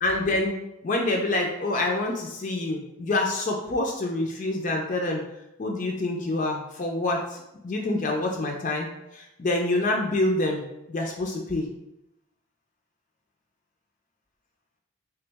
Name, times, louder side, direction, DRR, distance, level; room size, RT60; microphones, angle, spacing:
voice 1, 0.0-5.2 5.6-10.6 10.9-11.7, left 2 dB, 35° left, 1 dB, 0.4 m, -27 dB
3.4 x 3.0 x 3.4 m, 0.87 s
head